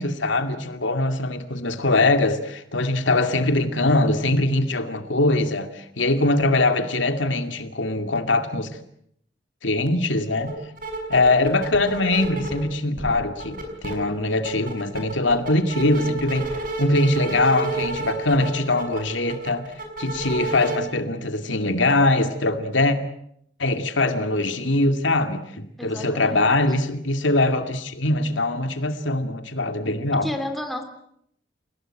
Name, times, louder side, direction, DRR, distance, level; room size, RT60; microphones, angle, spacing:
voice 1, 0.0-8.7 9.6-10.5 11.1-16.5 16.8-19.7 20.0-23.0 23.6-30.3, left 2 dB, 80° left, 2.4 m, -22 dB
sound 1, 10.4-10.5 10.8-12.6 13.0-13.9 14.3-20.8, right 3 dB, 45° right, 6.3 m, -31 dB
voice 2, 25.8-26.5 30.1-30.8, left 1 dB, ahead, 3.1 m, -32 dB
29.5 x 17.5 x 9.0 m
head